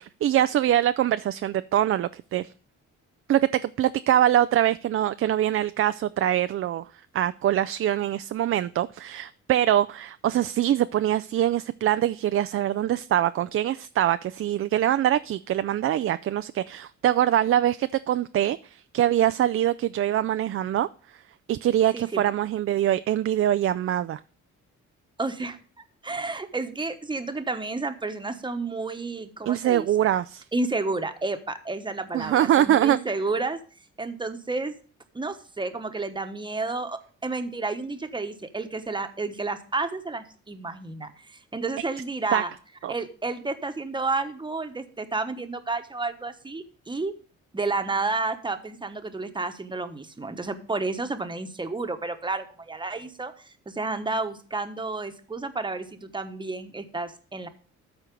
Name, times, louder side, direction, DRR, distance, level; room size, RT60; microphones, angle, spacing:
voice 1, 0.0-2.5 3.3-6.8 7.1-20.9 21.5-24.2 29.4-30.4 32.1-33.0 42.3-42.4 42.8-42.9, right 11 dB, 45° right, 0.4 m, -23 dB
voice 2, 21.9-22.3 25.2-25.6 26.0-29.9 30.5-33.6 34.0-34.7 35.1-42.5 42.9-47.1 47.5-57.5, right 3 dB, 15° right, 1.1 m, -31 dB
13.0 x 4.4 x 5.2 m
cardioid pair, 90°, 30 cm